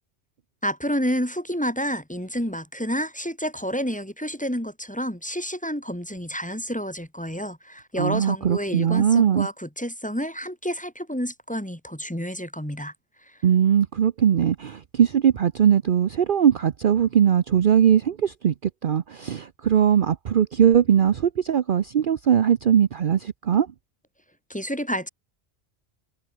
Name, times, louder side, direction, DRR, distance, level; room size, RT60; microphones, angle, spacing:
voice 1, 0.6-12.9 13.3-13.4 24.5-25.1, equal, 5° left, 1.9 m, -29 dB
voice 2, 8.0-9.5 13.4-18.5 18.8-23.7, right 8 dB, 55° right, 0.8 m, -20 dB
omnidirectional pair, 1.2 m